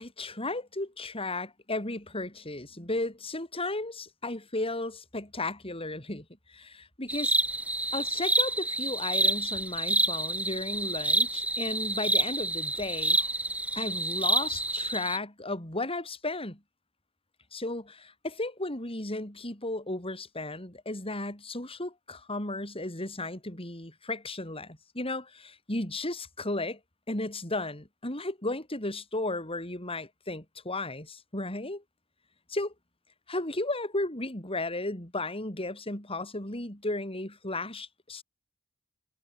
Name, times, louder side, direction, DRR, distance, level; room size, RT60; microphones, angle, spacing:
voice 1, 0.0-7.4 7.9-13.2 13.8-16.6 17.5-26.8 27.1-31.8 32.5-32.7 33.3-38.2, left 2 dB, 25° left, 7.8 m, -34 dB
sound 1, 7.1-15.2, right 2 dB, 5° right, 4.1 m, -28 dB
head